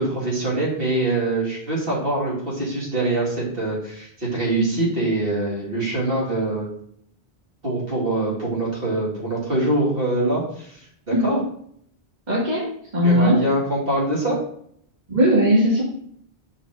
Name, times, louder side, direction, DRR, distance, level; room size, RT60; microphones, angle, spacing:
voice 1, 0.0-6.7 7.6-10.8 11.1-11.4 13.0-14.4, right 2 dB, 60° right, -5 dB, 2.9 m, -24 dB
voice 2, 12.3-12.7 12.9-13.4 15.1-15.8, equal, 45° right, -6 dB, 2.1 m, -18 dB
5.3 x 5.1 x 6.2 m, 0.66 s
omnidirectional pair, 1.1 m